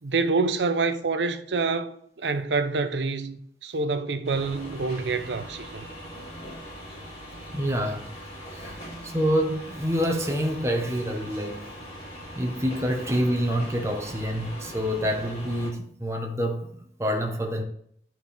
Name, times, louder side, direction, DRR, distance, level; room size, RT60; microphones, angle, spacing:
voice 1, 0.0-5.9, right 4 dB, 80° right, 0.6 m, -27 dB
sound 1, 4.2-15.7, equal, 35° left, 2.9 m, -41 dB
voice 2, 7.5-8.1 8.5-8.8 9.0-11.7 12.3-17.6, equal, 15° right, 1.0 m, -27 dB
9.9 x 4.5 x 3.4 m
head